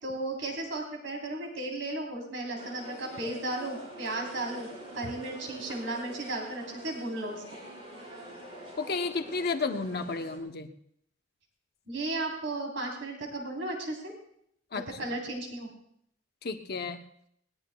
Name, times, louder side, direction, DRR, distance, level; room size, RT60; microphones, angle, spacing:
voice 1, 0.0-4.7 5.0-7.4 11.9-14.1 14.7-15.7, right 2 dB, 85° right, 0 dB, 3.7 m, -35 dB
sound 1, 2.6-10.4, right 1 dB, 35° right, 4.8 m, -46 dB
voice 2, 8.8-10.7 14.7-14.8 16.4-17.0, left 4 dB, 55° left, 6 dB, 0.8 m, -32 dB
20.5 x 19.0 x 2.3 m, 0.70 s
head